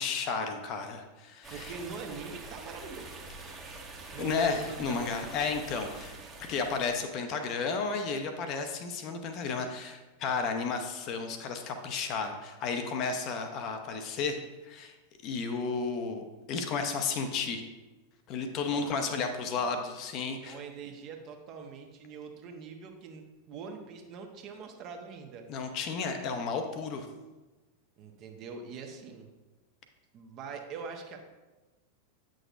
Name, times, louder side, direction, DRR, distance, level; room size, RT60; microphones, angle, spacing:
voice 1, 0.0-1.7 4.2-6.1 6.5-14.4 14.6-14.9 15.2-17.6 18.3-20.6 25.5-27.1, left 5 dB, 40° left, 6 dB, 0.7 m, -33 dB
sound 1, 1.4-7.0, right 3 dB, 15° right, 1.1 m, -45 dB
voice 2, 1.5-3.1 4.1-5.1 18.7-19.2 19.4-19.8 20.4-23.2 23.5-25.4 28.0-29.3 30.1-31.2, right 5 dB, 35° right, 4 dB, 0.9 m, -43 dB
8.8 x 6.3 x 2.5 m, 1.1 s
figure-of-eight pair, 90°, 0 cm